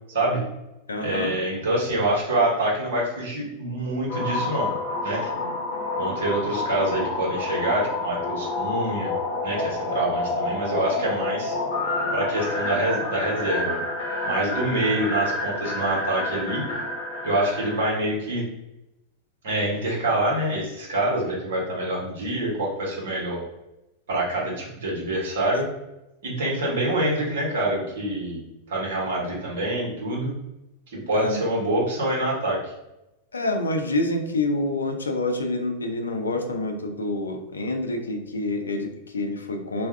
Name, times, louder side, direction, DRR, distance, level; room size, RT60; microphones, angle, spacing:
voice 1, 0.1-0.4 1.0-4.7 5.0-5.3 5.9-9.1 9.4-11.5 12.1-13.8 14.2-16.6 17.2-18.4 19.4-23.4 24.1-25.7 26.2-30.3 30.9-32.7, right 1 dB, 60° right, -4 dB, 1.1 m, -26 dB
voice 2, 0.9-1.3 31.1-31.4 33.3-39.9, left 2 dB, 75° left, 4 dB, 0.4 m, -27 dB
sound 1, 4.1-17.9, left 2 dB, 50° left, 1.1 m, -29 dB
2.4 x 2.2 x 3.3 m, 0.92 s
figure-of-eight pair, 90°, 0 cm